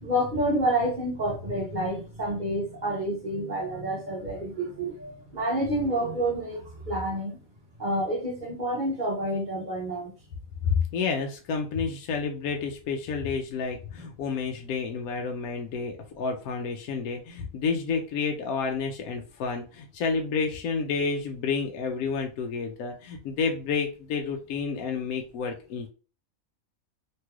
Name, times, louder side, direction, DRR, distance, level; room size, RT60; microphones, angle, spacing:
voice 1, 0.0-7.4 7.8-10.1 14.0-14.1, right 1 dB, 40° right, 0.8 m, -29 dB
voice 2, 10.6-25.9, left 5 dB, 85° left, 1.0 m, -30 dB
3.1 x 3.0 x 2.3 m
omnidirectional pair, 1.5 m